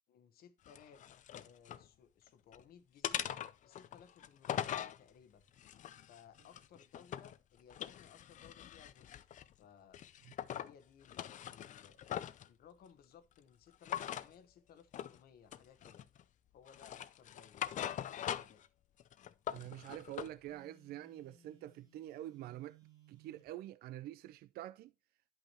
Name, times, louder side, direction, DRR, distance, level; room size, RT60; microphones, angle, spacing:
voice 1, 0.1-5.4 6.0-10.0 10.6-12.0 12.5-16.1 16.5-17.7 18.2-18.6, left 7 dB, 65° left, 1.1 m, -61 dB
sound 1, 0.7-1.8 2.3-2.6 3.0-5.0 5.6-7.4 7.7-9.5 9.9-10.7 11.0-12.5 13.8-14.3 14.9-15.2 15.5-16.2 16.7-18.7 19.0-20.3, left 10 dB, 50° left, 0.5 m, -42 dB
voice 2, 19.5-22.8 23.1-24.9, right 14 dB, 65° right, 0.4 m, -46 dB
Telephone, 20.4-23.5, right 6 dB, 25° right, 2.2 m, -64 dB
10.5 x 5.6 x 2.9 m
cardioid pair, 110°, 17 cm